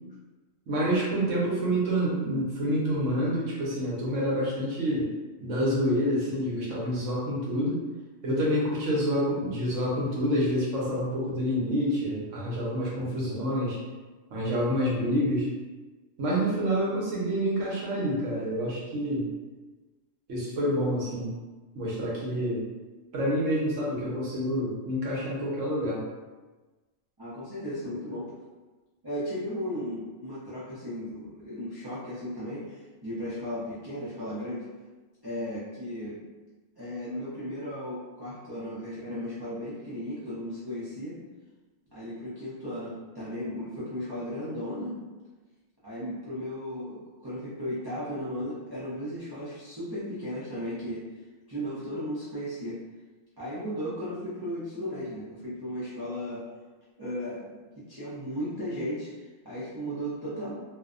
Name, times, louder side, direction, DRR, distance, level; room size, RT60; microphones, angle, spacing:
voice 1, 0.7-5.1 5.4-7.8 8.2-13.8 14.3-15.5 16.2-19.3 20.3-21.3 21.7-22.6 23.1-26.0, equal, 75° right, -5 dB, 1.1 m, -27 dB
voice 2, 27.2-28.3 29.0-34.7 35.2-36.2 36.8-41.2 41.9-45.0 45.8-51.1 51.5-52.8 53.4-56.4 57.0-60.5, equal, 30° right, -12 dB, 0.4 m, -35 dB
2.6 x 2.1 x 2.4 m, 1.3 s
omnidirectional pair, 1.3 m